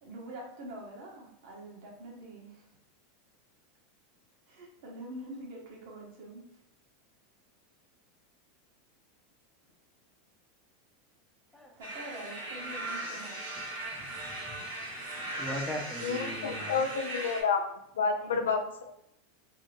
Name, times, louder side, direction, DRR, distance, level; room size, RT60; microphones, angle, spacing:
voice 1, 0.0-2.7 4.5-6.5 11.8-13.5 18.2-18.4, right 1 dB, 70° right, -1 dB, 1.0 m, -45 dB
sound 1, 11.8-17.4, right 1 dB, 85° right, 0.8 m, -38 dB
voice 2, 14.0-14.7 15.1-16.8, left 1 dB, 10° left, 1 dB, 0.6 m, -40 dB
voice 3, 16.0-18.9, left 5 dB, 90° left, 6 dB, 0.4 m, -30 dB
2.6 x 2.1 x 3.1 m, 0.77 s
hypercardioid pair, 110°, 0 cm